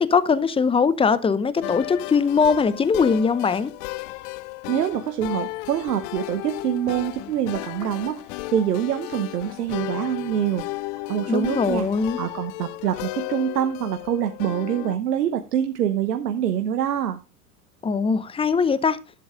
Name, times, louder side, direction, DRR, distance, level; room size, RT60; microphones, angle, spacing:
voice 1, 0.0-3.7 11.3-12.2 17.8-19.0, left 5 dB, 10° left, 0.7 m, -21 dB
sound 1, 1.6-15.0, left 20 dB, 55° left, 0.6 m, -34 dB
voice 2, 4.7-8.2 8.5-10.6 11.1-11.9 12.2-17.2, right 10 dB, 80° right, 1.2 m, -25 dB
11.5 x 7.9 x 3.8 m
hypercardioid pair, 90°, 47 cm